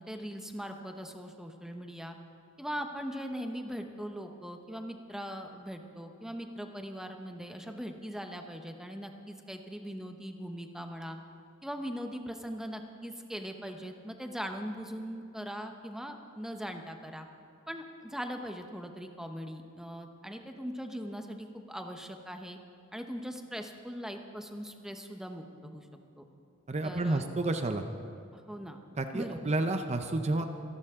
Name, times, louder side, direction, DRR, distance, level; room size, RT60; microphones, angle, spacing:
voice 1, 0.0-2.2 2.6-11.2 11.6-17.3 17.7-22.6 22.9-25.9 26.2-26.3 26.8-27.2 28.3-28.8 29.1-29.5 30.4-30.5, equal, ahead, 4 dB, 0.9 m, -40 dB
voice 2, 26.7-27.8 29.0-30.5, right 2 dB, 30° right, 6 dB, 0.7 m, -30 dB
26.0 x 11.5 x 3.7 m, 2.7 s
head